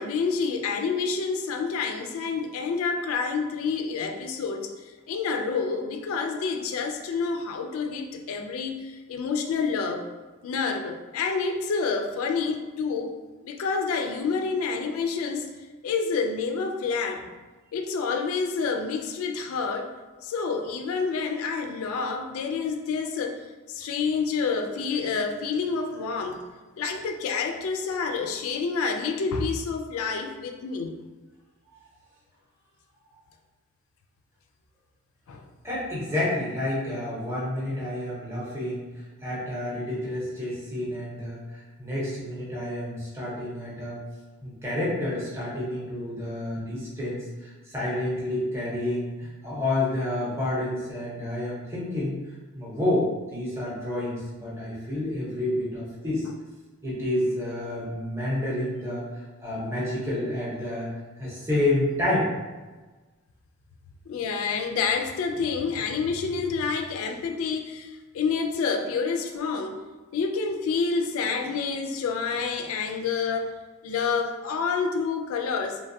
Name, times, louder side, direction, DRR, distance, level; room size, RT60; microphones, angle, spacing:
voice 1, 0.0-10.1 10.4-13.1 13.4-15.5 15.8-17.2 17.7-19.9 20.2-23.4 23.7-26.4 26.8-31.0 35.3-35.4 64.1-69.8 70.1-73.6 73.8-75.8, left 5 dB, 65° left, 4 dB, 0.3 m, -28 dB
voice 2, 35.6-38.8 39.2-44.0 44.4-52.1 52.5-56.3 56.8-59.0 59.4-60.9 61.2-62.3, left 1 dB, 10° right, -7 dB, 0.7 m, -29 dB
3.1 x 2.2 x 2.6 m, 1.3 s
head